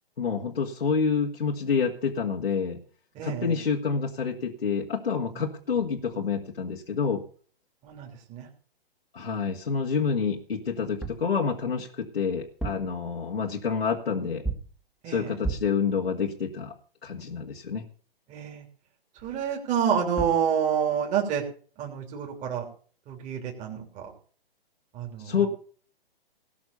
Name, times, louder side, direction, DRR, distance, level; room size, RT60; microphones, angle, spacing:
voice 1, 0.2-2.8 3.2-7.2 9.1-14.4 15.1-16.7 17.0-17.8 25.2-25.5, left 6 dB, 85° left, -1 dB, 2.0 m, -28 dB
voice 2, 3.1-3.6 5.3-5.5 7.8-8.5 15.0-15.3 18.3-18.6 19.1-21.4 21.8-22.6 23.1-24.1 24.9-25.5, right 8 dB, 25° right, 0 dB, 3.3 m, -29 dB
sound 1, 11.0-11.3 12.4-13.0 14.4-14.8 15.4-15.8 19.9-20.0 20.2-20.5, right 4 dB, ahead, 1.8 m, -33 dB
18.5 x 6.2 x 7.0 m, 0.43 s
hypercardioid pair, 130°, 30 cm